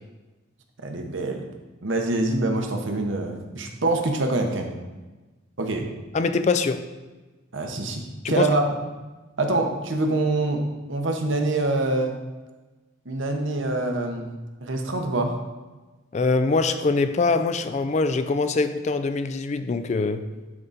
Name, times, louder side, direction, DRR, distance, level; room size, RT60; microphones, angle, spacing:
voice 1, 0.8-1.4 1.8-4.7 5.6-5.9 7.5-8.9 9.4-12.2 13.1-14.3 14.6-15.4, right 2 dB, 65° right, 4 dB, 0.9 m, -25 dB
voice 2, 6.1-6.8 8.2-8.5 16.1-20.2, left 3 dB, 35° left, 10 dB, 0.3 m, -23 dB
11.0 x 3.8 x 4.1 m, 1.2 s
head